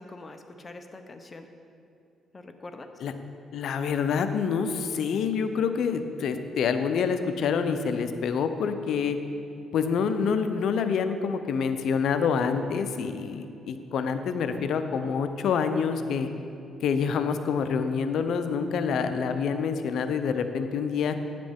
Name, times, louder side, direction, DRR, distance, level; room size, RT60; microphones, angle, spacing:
voice 1, 0.0-1.5 2.3-2.9 13.2-13.4, left 2 dB, 30° left, 6 dB, 0.7 m, -44 dB
voice 2, 3.5-9.2 9.7-16.3 16.8-21.2, left 6 dB, 70° left, 9 dB, 0.5 m, -27 dB
10.0 x 7.5 x 3.5 m, 2.6 s
cardioid pair, 90°, 0 cm